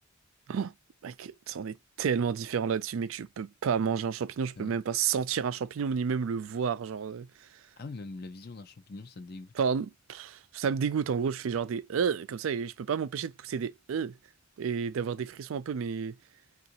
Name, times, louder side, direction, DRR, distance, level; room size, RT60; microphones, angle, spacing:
voice 1, 1.0-7.5 9.6-14.2 14.6-16.1, right 6 dB, 75° right, 0.4 m, -31 dB
voice 2, 7.8-9.5, left 3 dB, 50° left, 0.6 m, -43 dB
3.8 x 2.4 x 2.7 m
head